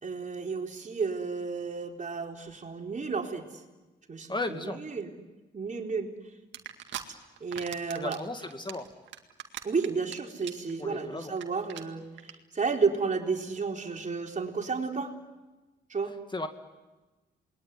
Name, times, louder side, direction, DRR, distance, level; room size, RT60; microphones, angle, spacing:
voice 1, 0.0-3.5 4.1-5.2 5.5-6.1 7.4-8.2 9.6-15.1 15.9-16.1, right 5 dB, 40° right, 2 dB, 4.1 m, -32 dB
voice 2, 4.3-4.8 7.9-8.9 10.8-11.3 16.3-16.5, left 2 dB, 25° left, 7 dB, 2.3 m, -35 dB
sound 1, 6.5-7.0 7.4-8.2 8.5-10.1 10.4-10.7 11.0-11.1 11.3-11.4 11.7-11.8 12.2-12.3, right 10 dB, 80° right, 2.1 m, -39 dB
27.5 x 21.0 x 9.8 m, 1.2 s
supercardioid pair, 60°, 19 cm